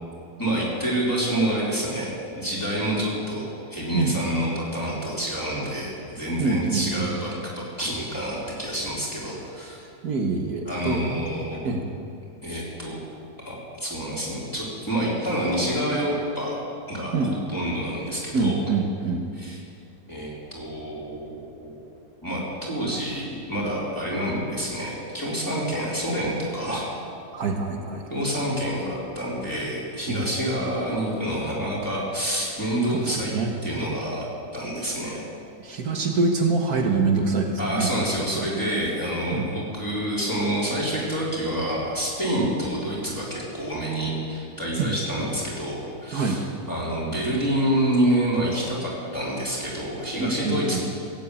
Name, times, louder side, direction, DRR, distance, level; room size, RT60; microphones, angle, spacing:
voice 1, 0.4-9.8 10.7-11.6 12.4-13.0 13.4-16.6 16.9-17.1 17.5-18.6 19.4-19.6 20.1-21.9 22.2-26.8 28.1-33.3 33.6-34.2 34.5-35.2 37.6-46.4 46.7-50.8, right 1 dB, 10° left, -7 dB, 3.8 m, -27 dB
voice 2, 6.4-7.1 10.0-11.2 11.6-11.8 17.1-17.4 18.3-19.2 27.3-28.0 30.1-30.2 32.9-33.5 35.6-37.9 38.3-38.5 39.3-39.5 44.8-45.0 46.1-46.4 50.2-50.8, right 4 dB, 60° right, 2 dB, 1.7 m, -25 dB
17.0 x 8.3 x 8.4 m, 2.5 s
omnidirectional pair, 1.9 m